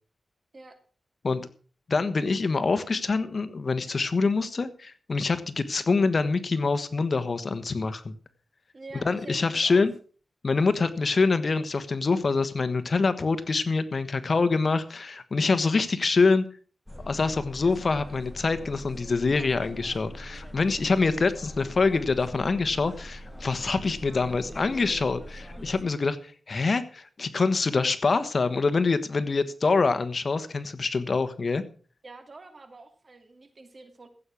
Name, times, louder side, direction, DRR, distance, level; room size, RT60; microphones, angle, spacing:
voice 1, 1.9-8.1 9.0-9.9 10.4-16.4 17.1-31.6, left 4 dB, 50° left, 12 dB, 1.3 m, -25 dB
voice 2, 8.7-9.8 32.0-34.1, right 3 dB, 45° right, 7 dB, 2.7 m, -46 dB
sound 1, 16.9-25.8, equal, 5° left, 2.1 m, -42 dB
15.5 x 8.4 x 6.0 m, 0.40 s
cardioid pair, 75°, 0 cm